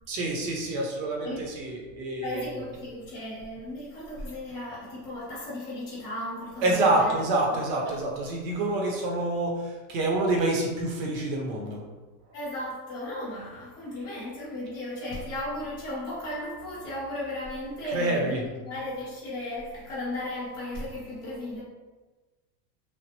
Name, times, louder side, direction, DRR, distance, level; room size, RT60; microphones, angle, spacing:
voice 1, 0.1-1.3 1.6-2.5 6.6-11.8 17.9-18.4, right 2 dB, 75° right, 0 dB, 0.8 m, -27 dB
voice 2, 2.2-7.1 7.5-7.6 7.9-8.0 12.3-21.6, left 1 dB, 10° left, -9 dB, 0.4 m, -35 dB
3.1 x 2.0 x 2.9 m, 1.2 s
supercardioid pair, 175°, 50 cm